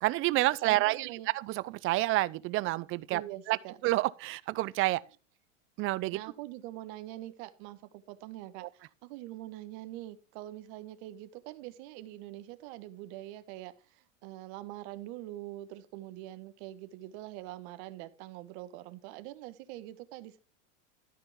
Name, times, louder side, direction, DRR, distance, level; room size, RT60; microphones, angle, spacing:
voice 1, 0.0-3.2 3.5-3.6 3.8-5.0 5.8-6.2 8.6-8.7, right 18 dB, 35° right, 0.5 m, -29 dB
voice 2, 0.7-1.3 3.1-3.8 6.1-20.4, right 15 dB, 55° right, 1.4 m, -44 dB
13.0 x 5.3 x 5.8 m
supercardioid pair, 120°, 38 cm